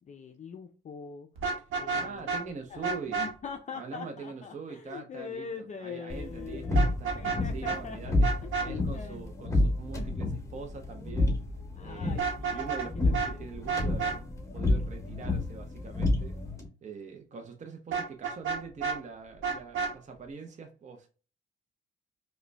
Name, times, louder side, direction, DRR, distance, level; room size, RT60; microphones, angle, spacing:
voice 1, 0.1-1.3 1.8-2.3 2.7-8.1 8.4-9.3 9.9-10.1 11.8-12.6 13.0-13.5, left 6 dB, 35° left, 0.4 m, -42 dB
Vehicle horn car horn honking, 1.4-2.4 2.8-3.3 6.7-7.4 7.6-7.8 8.2-8.7 12.1-12.9 13.1-13.3 13.7-14.2 17.9-19.0 19.4-19.9, right 5 dB, 80° right, 0.9 m, -30 dB
voice 2, 1.9-3.3 3.7-8.3 8.6-11.4 11.8-12.2 12.5-14.3 14.5-16.4 16.8-21.1, right 4 dB, 35° right, 0.6 m, -43 dB
sound 1, 6.1-16.7, left 2 dB, 15° left, 1.0 m, -30 dB
4.8 x 2.2 x 2.2 m
cardioid pair, 90°, 20 cm